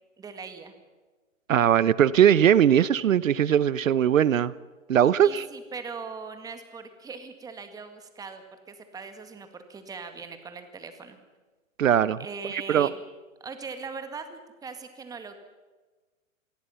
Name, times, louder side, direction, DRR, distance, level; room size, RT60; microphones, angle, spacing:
voice 1, 0.2-0.7 5.2-11.2 12.2-13.0 13.4-15.4, right 5 dB, 10° right, 8 dB, 1.9 m, -40 dB
voice 2, 1.5-4.5 4.9-5.4 11.8-12.2 12.7-12.9, right 9 dB, 75° right, 19 dB, 0.9 m, -20 dB
28.0 x 20.0 x 5.8 m, 1.3 s
hypercardioid pair, 145°, 40 cm